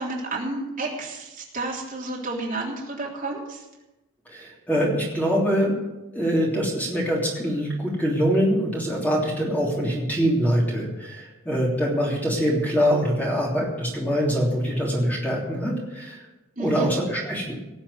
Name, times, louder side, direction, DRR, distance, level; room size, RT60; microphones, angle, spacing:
voice 1, 0.0-3.6 16.6-16.9, right 2 dB, 40° right, -3 dB, 3.4 m, -31 dB
voice 2, 4.3-5.7 6.1-16.2 16.6-17.6, equal, 10° left, -3 dB, 3.2 m, -24 dB
18.5 x 7.2 x 8.4 m, 1.0 s
head